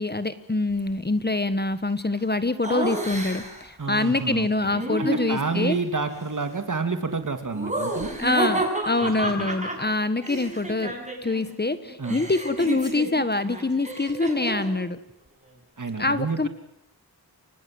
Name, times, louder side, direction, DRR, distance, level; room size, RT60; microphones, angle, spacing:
voice 1, 0.0-5.8 8.2-10.9 11.2-15.0 16.0-16.5, left 2 dB, 25° left, 12 dB, 1.5 m, -25 dB
Laughter, 2.6-3.7 4.7-5.7 7.5-11.4 11.7-14.8, right 2 dB, 20° right, 7.5 m, -30 dB
voice 2, 3.8-4.7 5.0-8.1 9.0-9.5 12.0-12.2 15.8-16.5, right 4 dB, 50° right, 7 dB, 2.9 m, -29 dB
29.0 x 25.5 x 7.9 m, 0.69 s
wide cardioid pair, 100°, 39 cm